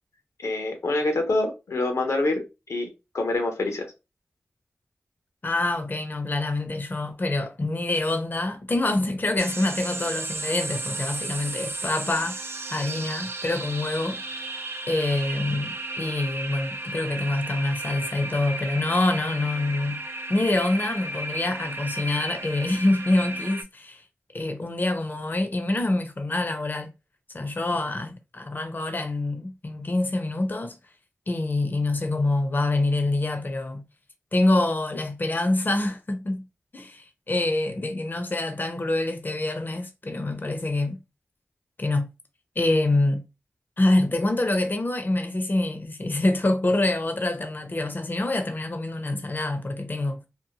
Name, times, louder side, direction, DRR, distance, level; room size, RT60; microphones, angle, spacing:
voice 1, 0.4-2.4 2.7-2.9 3.1-3.9, left 2 dB, 85° left, 0.6 m, -25 dB
voice 2, 5.4-14.2 14.9-20.0 20.3-24.0 24.3-26.9 27.3-30.8 31.3-33.8 34.3-36.5 36.7-41.0 41.8-42.1 42.6-43.2 43.8-50.3, left 2 dB, 40° left, 0.5 m, -26 dB
sound 1, 9.4-23.6, right 2 dB, 50° right, 0.5 m, -34 dB
2.7 x 2.0 x 2.7 m
cardioid pair, 50°, 5 cm